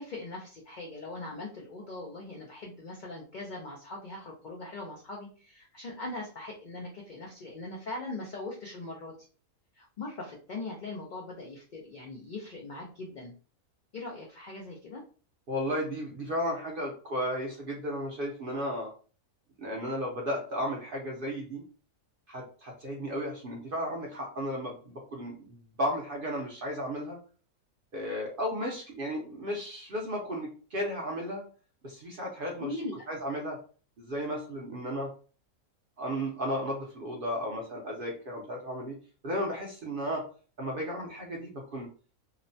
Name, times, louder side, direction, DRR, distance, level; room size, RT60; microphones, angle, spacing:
voice 1, 0.0-9.3 9.7-13.3 13.9-15.0 32.6-33.1, left 2 dB, 85° left, -1 dB, 0.4 m, -40 dB
voice 2, 15.5-18.9 19.6-21.6 22.3-27.2 27.9-31.4 31.8-32.8 33.1-33.6 34.0-35.1 36.0-39.0 39.2-40.2 40.6-41.9, equal, 55° right, 0 dB, 0.6 m, -34 dB
2.8 x 2.1 x 2.6 m, 0.38 s
omnidirectional pair, 1.5 m